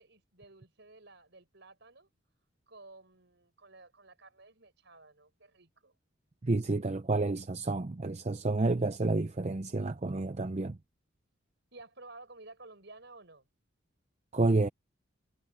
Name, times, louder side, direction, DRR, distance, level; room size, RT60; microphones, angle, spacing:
voice 1, 0.0-2.1 2.7-5.9 11.7-13.5, right 2 dB, 60° right, 6.5 m, -54 dB
voice 2, 6.4-10.8 14.3-14.7, right 2 dB, 35° right, 0.6 m, -29 dB
head